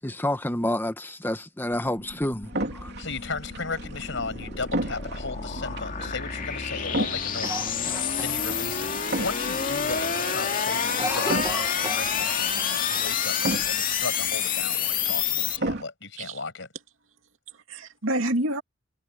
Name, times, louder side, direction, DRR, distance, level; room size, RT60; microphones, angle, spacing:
voice 1, 0.0-2.9, left 1 dB, 10° left, 1.3 m, -29 dB
sound 1, 1.7-15.6, left 7 dB, 45° left, 2.3 m, -29 dB
sound 2, 2.5-15.8, right 1 dB, 55° right, 2.9 m, -35 dB
voice 2, 3.0-16.7, left 4 dB, 65° left, 6.1 m, -36 dB
Cough, 7.4-8.9 9.3-9.4 9.7-10.1 10.4-12.7 12.9-13.0 13.8-14.6, right 2 dB, 15° right, 1.5 m, -36 dB
voice 3, 17.5-18.6, right 1 dB, 85° right, 2.5 m, -28 dB
head